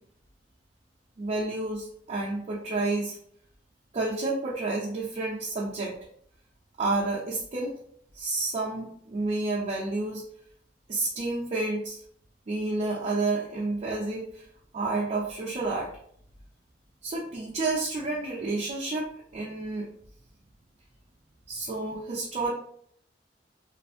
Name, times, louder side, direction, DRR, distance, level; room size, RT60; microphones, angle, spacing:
voice 1, 1.2-3.2 3.9-5.9 6.8-7.7 8.1-10.2 10.9-12.0 12.5-14.4 14.7-15.9 17.0-19.0 19.3-19.9 21.5-22.5, right 2 dB, 40° right, -4 dB, 0.4 m, -30 dB
2.5 x 2.4 x 2.5 m, 0.65 s
head